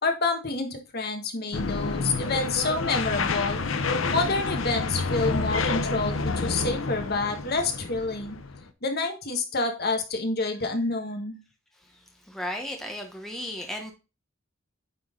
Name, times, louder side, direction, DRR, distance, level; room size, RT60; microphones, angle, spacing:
voice 1, 0.0-3.6 4.1-8.4 8.8-11.4, left 3 dB, 50° left, 4 dB, 1.5 m, -28 dB
sound 1, 1.5-8.7, left 4 dB, 70° left, 0.8 m, -29 dB
voice 2, 12.3-13.9, left 1 dB, ahead, 2 dB, 1.0 m, -34 dB
9.1 x 3.9 x 3.8 m, 0.29 s
head